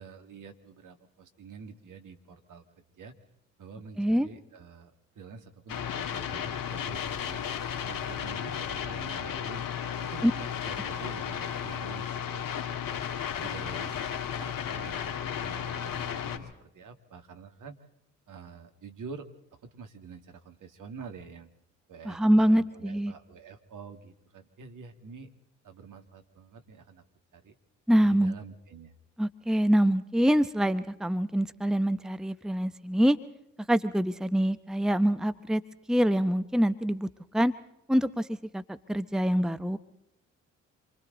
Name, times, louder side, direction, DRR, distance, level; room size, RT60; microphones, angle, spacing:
voice 1, 0.0-2.6 3.0-3.1 3.6-7.4 7.8-9.6 10.0-13.0 13.4-17.8 18.3-19.3 19.6-21.5 21.9-25.3 25.6-27.0 27.3-27.5 28.0-28.9, right 5 dB, 55° right, 6 dB, 2.3 m, -47 dB
voice 2, 4.0-4.3 10.2-10.3 22.0-23.1 27.9-28.3 29.2-33.2 33.7-35.6 35.9-37.5 37.9-39.8, equal, ahead, 12 dB, 1.0 m, -25 dB
sound 1, 5.7-16.4, left 8 dB, 60° left, 2.5 m, -34 dB
27.5 x 24.0 x 4.0 m, 0.77 s
hypercardioid pair, 40°, 37 cm